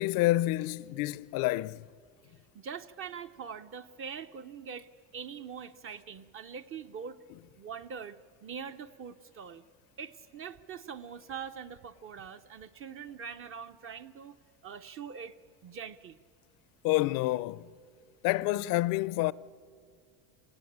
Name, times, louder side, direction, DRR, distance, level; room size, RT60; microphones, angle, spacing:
voice 1, 0.0-1.8 16.8-17.7 18.2-19.3, left 17 dB, 55° left, 0.6 m, -28 dB
voice 2, 2.5-7.2 7.6-9.6 10.0-14.4 14.6-15.4 15.6-16.2, right 6 dB, 30° right, 0.6 m, -43 dB
27.5 x 18.0 x 8.7 m
cardioid pair, 140°, 42 cm